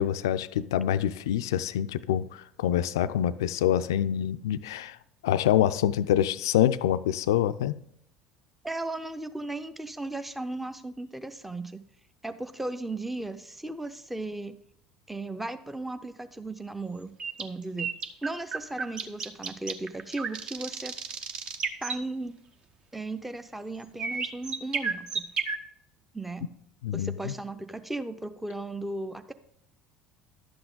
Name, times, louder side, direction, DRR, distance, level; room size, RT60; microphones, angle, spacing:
voice 1, 0.0-5.0 5.2-7.7 26.8-27.3, left 11 dB, 70° left, 0.4 m, -26 dB
voice 2, 8.6-11.8 12.2-14.6 15.1-17.1 17.4-17.9 18.2-20.9 21.8-22.3 22.9-25.3 26.1-26.5 26.9-29.3, right 2 dB, 5° right, 0.6 m, -36 dB
sound 1, 17.2-22.0 24.0-25.6, right 5 dB, 40° right, 0.8 m, -33 dB
11.5 x 7.9 x 3.8 m
figure-of-eight pair, 65°, 2 cm